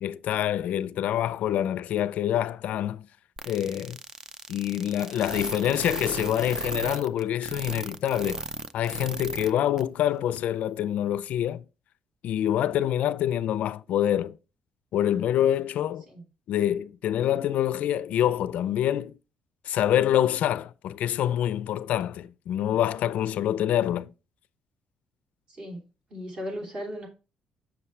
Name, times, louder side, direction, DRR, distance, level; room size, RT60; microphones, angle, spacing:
voice 1, 0.0-3.1 3.5-4.0 4.5-8.4 8.7-11.6 12.2-14.4 14.9-16.0 16.5-19.1 19.7-24.1, left 11 dB, 65° left, 0.4 m, -26 dB
sound 1, 3.4-9.5 9.8-9.9 10.4-10.5, right 3 dB, 20° right, 0.5 m, -35 dB
voice 2, 25.5-25.8 26.1-27.1, equal, 35° right, 2.9 m, -36 dB
7.8 x 6.9 x 3.2 m
cardioid pair, 150°, 3 cm